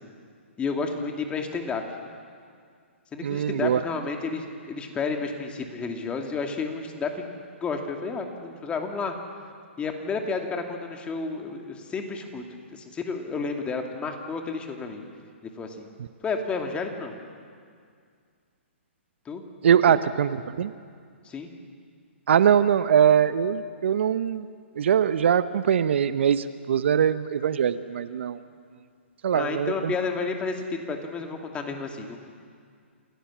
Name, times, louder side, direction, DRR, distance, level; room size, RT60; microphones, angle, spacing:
voice 1, 0.6-1.8 3.1-7.2 7.6-9.2 9.8-12.4 12.7-15.0 15.6-15.9 16.2-17.2 19.3-19.4 21.2-21.5 29.3-32.2, left 4 dB, 15° left, 3 dB, 2.4 m, -31 dB
voice 2, 3.2-3.8 16.0-16.1 19.6-20.7 22.3-24.5 24.7-28.4 29.2-29.9, right 8 dB, 65° right, 14 dB, 0.8 m, -22 dB
28.0 x 17.0 x 7.4 m, 2.1 s
hypercardioid pair, 130°, 7 cm